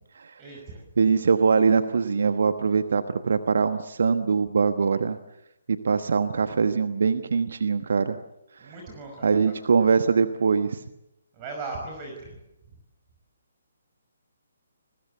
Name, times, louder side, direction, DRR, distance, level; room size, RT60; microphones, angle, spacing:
voice 1, 0.4-0.8 8.6-9.4 11.3-12.3, right 3 dB, 25° right, 2 dB, 5.4 m, -38 dB
voice 2, 1.0-5.2 5.7-8.2 8.6-8.8 9.2-10.8, right 5 dB, 55° right, 11 dB, 1.2 m, -22 dB
29.5 x 21.0 x 8.0 m, 0.88 s
figure-of-eight pair, 135°, 0 cm